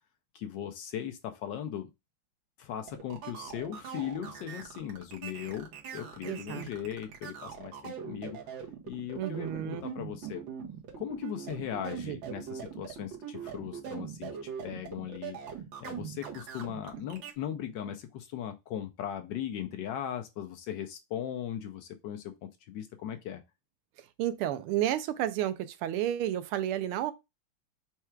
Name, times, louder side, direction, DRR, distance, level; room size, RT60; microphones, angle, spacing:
voice 1, 0.3-1.9 2.6-5.7 5.9-8.4 8.9-10.5 11.0-15.4 15.8-23.4, left 10 dB, 75° left, 1.1 m, -38 dB
sound 1, 2.9-17.3, right 7 dB, 65° right, 1.6 m, -41 dB
voice 2, 6.2-6.7 9.2-9.8 12.1-12.3 24.0-27.1, right 12 dB, 85° right, 1.5 m, -32 dB
4.5 x 2.4 x 4.4 m
omnidirectional pair, 2.4 m